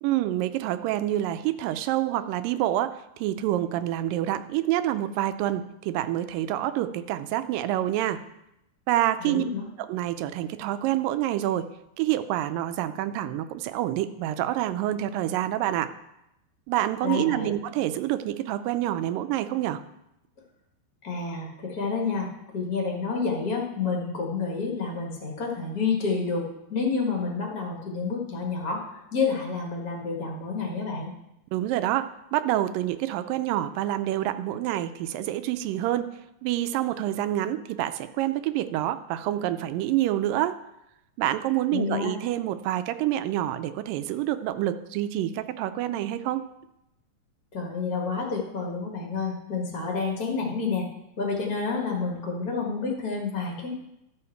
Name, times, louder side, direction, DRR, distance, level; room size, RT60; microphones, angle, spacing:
voice 1, 0.0-8.2 8.9-9.4 9.8-11.7 12.0-15.9 16.7-19.8 31.5-36.1 36.4-40.6 41.2-46.4, right 13 dB, 85° right, 11 dB, 2.2 m, -27 dB
voice 2, 9.2-9.7 17.0-17.5 21.0-26.4 26.7-31.1 41.7-42.1 47.5-50.9 51.2-53.7, left 4 dB, 40° left, -1 dB, 1.4 m, -29 dB
12.5 x 7.1 x 4.5 m, 0.86 s
omnidirectional pair, 4.0 m